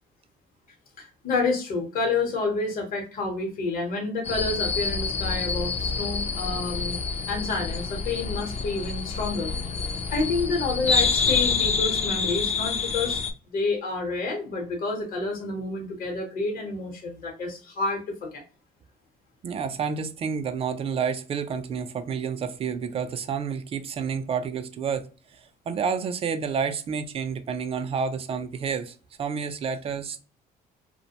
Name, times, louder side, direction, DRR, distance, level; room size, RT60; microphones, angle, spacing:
voice 1, 1.0-7.0 7.3-13.2 13.4-18.4, left 3 dB, 55° left, 0.9 m, -29 dB
sound 1, 4.2-13.3, left 5 dB, 40° left, 0.4 m, -27 dB
voice 2, 19.4-25.4 25.7-30.2, right 6 dB, 35° right, 0.3 m, -29 dB
2.4 x 2.1 x 2.8 m
cardioid pair, 110°, 17 cm